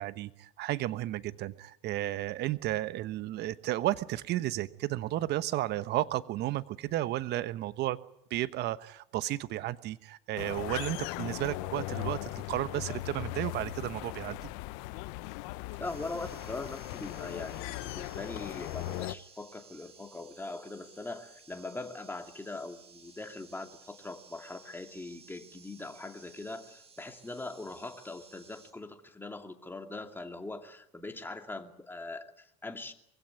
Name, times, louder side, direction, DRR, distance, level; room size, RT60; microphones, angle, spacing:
voice 1, 0.0-8.0 8.3-14.5, right 15 dB, 55° right, 14 dB, 1.2 m, -33 dB
sound 1, 10.4-19.1, left 19 dB, 70° left, 0.8 m, -38 dB
voice 2, 15.8-32.9, left 2 dB, 10° left, 5 dB, 2.5 m, -41 dB
sound 2, 15.8-28.7, right 5 dB, 30° right, 4.9 m, -57 dB
23.0 x 16.5 x 9.4 m, 0.76 s
hypercardioid pair, 80°, 20 cm